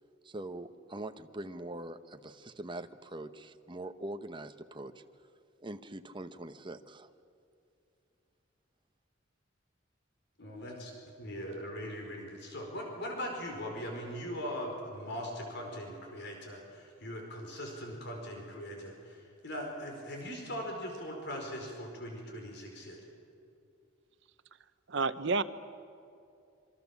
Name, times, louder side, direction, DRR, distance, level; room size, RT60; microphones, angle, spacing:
voice 1, 0.2-4.9 5.6-7.1, right 1 dB, 25° right, 8 dB, 1.0 m, -43 dB
voice 2, 10.4-10.9 11.2-23.0, equal, 60° left, 1 dB, 4.8 m, -40 dB
voice 3, 24.9-25.4, right 4 dB, 65° right, 13 dB, 1.0 m, -29 dB
27.0 x 24.0 x 7.3 m, 2.5 s
head